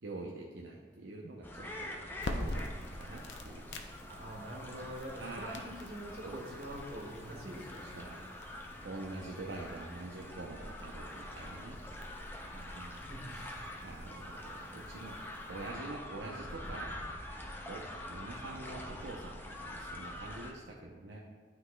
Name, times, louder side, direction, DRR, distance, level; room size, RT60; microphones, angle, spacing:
voice 1, 0.0-1.9 2.4-3.8 5.1-5.7 6.2-6.4 7.8-8.3 8.8-11.8 12.5-13.0 13.3-13.5 13.8-15.2 15.5-16.9 17.7-21.2, right 2 dB, 85° right, -2 dB, 0.6 m, -45 dB
sound 1, 1.4-20.5, left 1 dB, 10° left, 0.4 m, -45 dB
sound 2, 2.1-15.7, left 1 dB, 80° left, 0.6 m, -47 dB
voice 2, 4.1-8.3 13.0-13.3, right 1 dB, 60° right, -3 dB, 1.7 m, -45 dB
12.0 x 4.0 x 2.2 m, 1.4 s
head